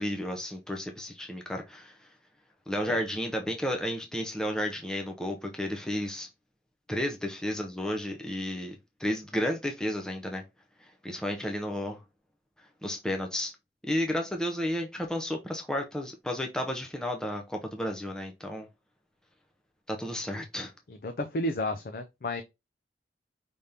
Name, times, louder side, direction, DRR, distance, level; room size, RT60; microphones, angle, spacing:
voice 1, 0.0-2.1 2.7-6.3 6.9-10.4 10.8-12.0 12.8-13.5 13.8-18.7 19.9-20.7, left 1 dB, 5° left, 0.6 m, -32 dB
voice 2, 20.9-22.4, left 1 dB, 55° left, 0.5 m, -32 dB
5.2 x 3.4 x 2.8 m
head